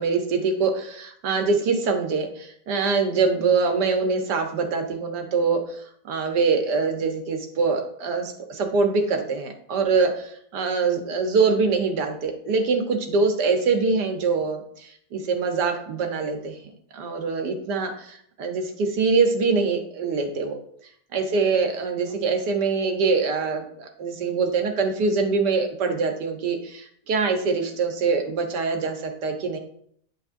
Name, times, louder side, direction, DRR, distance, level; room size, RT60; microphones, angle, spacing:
voice 1, 0.0-16.6 16.9-20.6 21.1-29.6, right 4 dB, 90° right, 4 dB, 1.7 m, -24 dB
10.5 x 5.4 x 2.6 m, 0.67 s
omnidirectional pair, 1.7 m